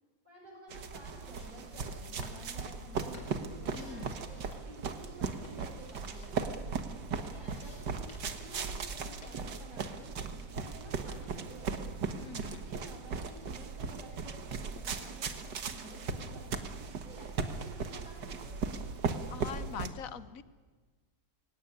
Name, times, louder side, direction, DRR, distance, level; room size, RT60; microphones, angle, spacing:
voice 1, 0.2-6.4 7.2-11.7 12.4-16.6 17.0-18.6, right 1 dB, 25° right, -7 dB, 7.3 m, -52 dB
sound 1, 0.7-19.9, right 5 dB, 85° right, 2.1 m, -38 dB
sound 2, 0.8-9.6, left 2 dB, 75° left, 4.9 m, -58 dB
voice 2, 3.7-4.2 12.2-12.6 19.3-20.4, left 7 dB, 55° left, 14 dB, 1.3 m, -43 dB
23.0 x 17.5 x 9.9 m, 1.4 s
omnidirectional pair, 1.8 m